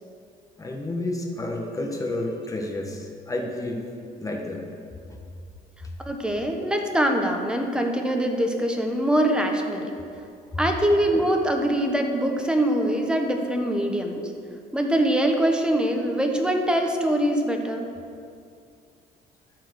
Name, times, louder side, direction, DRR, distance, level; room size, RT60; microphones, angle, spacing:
voice 1, 0.6-3.8 4.2-4.6 10.5-10.6, left 2 dB, 20° left, 1 dB, 1.4 m, -30 dB
voice 2, 6.0-9.9 10.6-14.3 14.7-17.8, right 1 dB, 5° right, 3 dB, 1.1 m, -23 dB
12.5 x 4.8 x 6.4 m, 2.4 s
cardioid pair, 110°, 17 cm